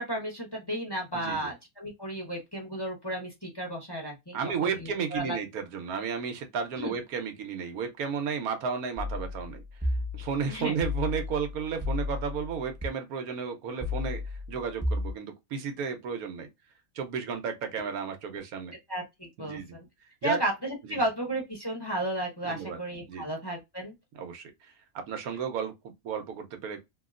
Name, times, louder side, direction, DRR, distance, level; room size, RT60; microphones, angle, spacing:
voice 1, 0.0-4.4 4.7-5.4 6.8-6.9 10.5-10.7 18.9-19.6 20.2-23.9, right 1 dB, 20° left, 0.7 m, -33 dB
voice 2, 1.1-1.5 4.3-9.6 10.1-14.2 14.5-16.5 16.9-18.8 19.4-19.7 20.2-20.4 20.9-21.0 22.4-22.8 23.1-23.3 24.1-24.5 25.1-26.8, right 6 dB, 85° right, 1.2 m, -33 dB
sound 1, 9.0-12.9 13.8-15.1, left 2 dB, 15° right, 0.6 m, -33 dB
2.9 x 2.7 x 2.4 m
omnidirectional pair, 1.5 m